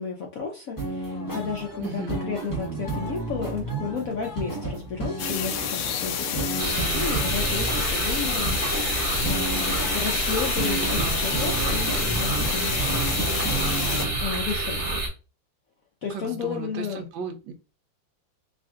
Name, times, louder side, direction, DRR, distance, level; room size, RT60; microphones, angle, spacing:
voice 1, 0.0-13.6 14.2-15.0 16.0-17.0, left 6 dB, 65° left, 1 dB, 0.9 m, -33 dB
sound 1, 0.8-14.2, right 3 dB, 15° left, 0.8 m, -32 dB
voice 2, 1.8-2.2 16.1-17.5, right 4 dB, 75° right, 5 dB, 1.3 m, -35 dB
sound 2, 5.2-14.1, left 8 dB, 85° left, 1.4 m, -29 dB
sound 3, 6.6-15.1, right 2 dB, 40° right, 1.2 m, -28 dB
3.7 x 2.5 x 3.6 m, 0.32 s
omnidirectional pair, 2.1 m